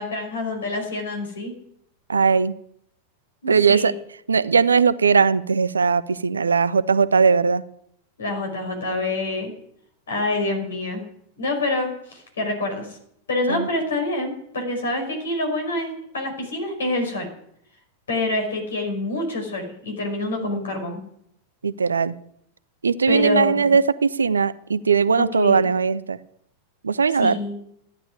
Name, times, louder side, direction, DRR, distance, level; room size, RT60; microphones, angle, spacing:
voice 1, 0.0-1.5 3.4-3.9 8.2-9.5 10.1-11.0 11.4-13.0 13.3-17.3 18.1-21.0 23.1-23.7 25.2-25.7 27.2-27.5, left 2 dB, 65° left, 3 dB, 5.5 m, -26 dB
voice 2, 2.1-2.5 3.5-3.9 4.3-7.6 13.5-13.7 20.3-20.7 21.6-22.1 22.8-26.2 26.8-27.4, right 5 dB, 75° right, 17 dB, 0.7 m, -19 dB
13.5 x 10.0 x 9.8 m, 0.72 s
figure-of-eight pair, 90°, 0 cm